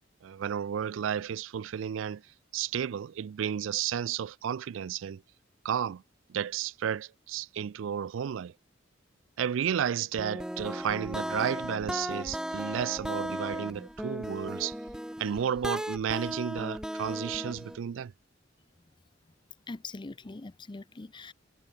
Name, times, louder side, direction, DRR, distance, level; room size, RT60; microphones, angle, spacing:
voice 1, 0.2-2.2 2.5-5.2 5.6-6.0 6.3-8.5 9.4-14.8 15.2-18.1, right 8 dB, 75° right, 0.4 m, -32 dB
sound 1, 10.2-17.8, equal, 5° right, 1.0 m, -36 dB
voice 2, 19.7-21.3, left 3 dB, 25° left, 0.6 m, -42 dB
head